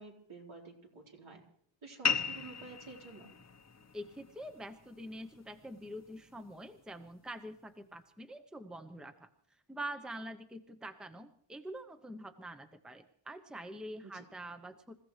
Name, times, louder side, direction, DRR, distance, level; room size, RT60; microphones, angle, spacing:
voice 1, 0.0-1.4 1.8-3.3 14.1-14.2, right 3 dB, 75° right, -1 dB, 4.2 m, -50 dB
sound 1, 2.0-7.1, left 6 dB, 35° left, 0.9 m, -39 dB
voice 2, 3.9-9.3 9.7-15.0, right 1 dB, ahead, 8 dB, 0.8 m, -45 dB
27.0 x 15.5 x 3.2 m, 0.67 s
wide cardioid pair, 125°, 49 cm